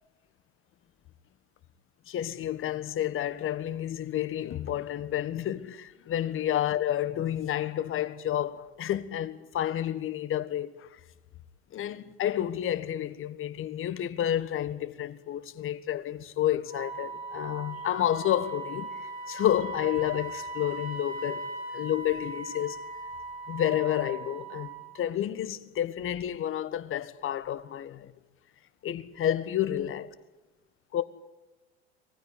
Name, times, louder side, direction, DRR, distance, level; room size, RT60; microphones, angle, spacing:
voice 1, 2.1-10.9 11.7-22.8 23.5-28.1 28.8-30.1 30.9-31.0, left 11 dB, 40° left, 1.5 m, -30 dB
Wind instrument woodwind instrument, 16.7-24.9, right 2 dB, 60° right, 5.9 m, -39 dB
22.5 x 15.5 x 10.0 m
hypercardioid pair, 80°, 32 cm